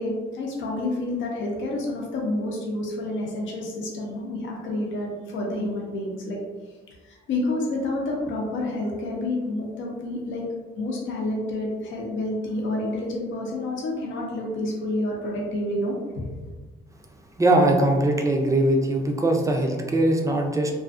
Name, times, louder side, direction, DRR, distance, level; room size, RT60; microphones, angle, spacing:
voice 1, 0.0-6.4 7.1-10.4 10.8-16.3, left 1 dB, 75° left, -2 dB, 0.7 m, -29 dB
voice 2, 17.4-20.7, right 1 dB, 15° right, 2 dB, 0.4 m, -21 dB
2.4 x 2.4 x 2.4 m, 1.4 s
cardioid pair, 90°, 20 cm